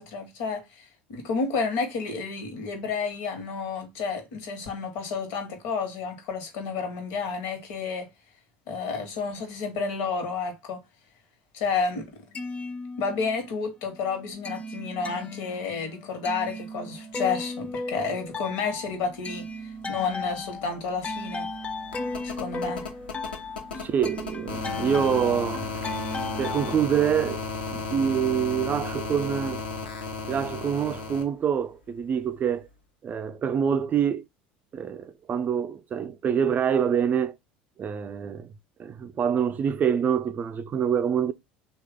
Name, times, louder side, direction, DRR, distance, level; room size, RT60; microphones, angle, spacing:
voice 1, 0.0-8.1 8.7-10.8 11.5-12.1 13.0-21.5 22.2-22.8, left 5 dB, 65° left, 1.1 m, -31 dB
sound 1, 12.1-13.6 13.9-26.7, left 2 dB, 25° left, 0.5 m, -36 dB
sound 2, 20.0-20.1 20.3-31.2 32.7-32.8, left 4 dB, 85° left, 0.7 m, -35 dB
voice 2, 23.7-26.0 26.4-27.4 27.7-29.6 30.3-32.7 33.0-34.2 34.7-37.4 37.8-38.5 38.8-41.3, right 8 dB, 35° right, 0.4 m, -26 dB
3.1 x 2.4 x 3.5 m
hypercardioid pair, 75°, 5 cm